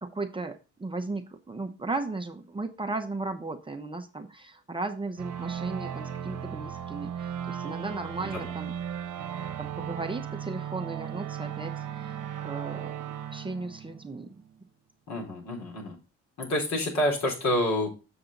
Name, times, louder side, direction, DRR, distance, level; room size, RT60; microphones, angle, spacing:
voice 1, 0.0-8.7 9.6-13.0 13.3-14.4, right 3 dB, 15° right, 4 dB, 0.8 m, -36 dB
sound 1, 5.2-14.5, right 9 dB, 80° right, 0.9 m, -36 dB
voice 2, 8.2-8.5 15.1-16.0 16.4-17.9, left 1 dB, 60° left, 0 dB, 4.0 m, -28 dB
7.0 x 6.8 x 3.8 m, 0.31 s
cardioid pair, 90°, 30 cm